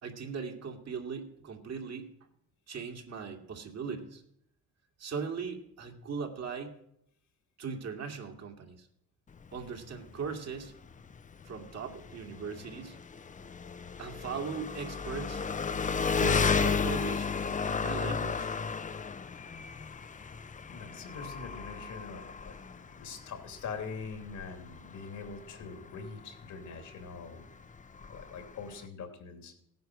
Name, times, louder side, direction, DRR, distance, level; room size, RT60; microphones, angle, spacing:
voice 1, 0.0-2.1 2.7-4.2 5.0-6.7 7.6-8.9 9.5-10.7 11.5-13.0 14.0-15.4 16.1-17.3 17.6-18.5, right 5 dB, 60° right, 3 dB, 2.5 m, -39 dB
Engine, 9.3-28.9, left 5 dB, 25° left, 0.6 m, -34 dB
voice 2, 20.7-22.6 22.8-27.4 28.1-29.6, left 5 dB, 75° left, 5 dB, 3.0 m, -43 dB
16.5 x 9.4 x 6.2 m, 0.75 s
cardioid pair, 90°, 30 cm